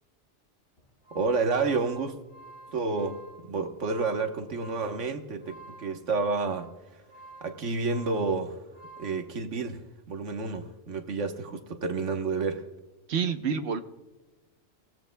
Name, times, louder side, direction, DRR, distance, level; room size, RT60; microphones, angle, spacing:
sound 1, 0.8-9.2, right 2 dB, 70° left, 6.6 m, -50 dB
voice 1, 1.1-2.2 2.7-7.0 7.4-8.7 9.0-12.7, right 4 dB, 90° right, 1.5 m, -30 dB
voice 2, 13.1-13.8, right 6 dB, 65° right, 1.1 m, -28 dB
27.5 x 16.5 x 2.2 m
omnidirectional pair, 1.2 m